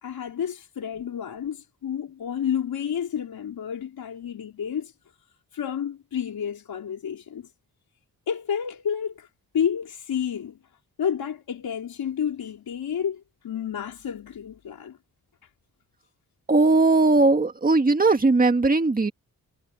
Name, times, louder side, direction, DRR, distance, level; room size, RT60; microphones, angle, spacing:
voice 1, 0.0-4.9 5.5-7.5 8.3-9.3 9.5-10.6 11.0-15.0, left 8 dB, 80° left, 4.4 m, -30 dB
voice 2, 16.5-19.1, right 3 dB, 25° right, 2.0 m, -19 dB
wide cardioid pair, 135°, 35 cm